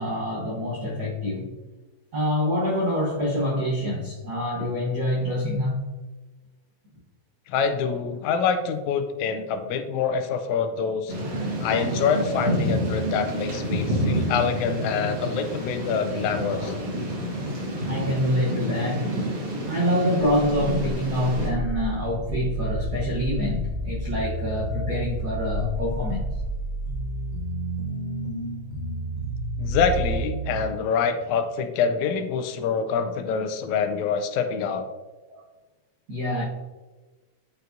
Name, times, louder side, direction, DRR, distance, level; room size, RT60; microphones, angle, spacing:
voice 1, 0.0-1.5 2.1-6.0 17.9-19.2 19.7-26.2 35.3-35.4 36.1-36.4, left 1 dB, 85° right, -4 dB, 0.8 m, -26 dB
voice 2, 7.5-11.1 11.6-16.7 29.6-34.9, left 6 dB, 80° left, 8 dB, 1.9 m, -26 dB
Thunder / Rain, 11.1-21.5, equal, 50° right, 2.1 m, -28 dB
sound 1, 21.3-30.6, right 1 dB, 25° left, 1.0 m, -30 dB
9.3 x 4.5 x 2.6 m, 1.2 s
omnidirectional pair, 3.4 m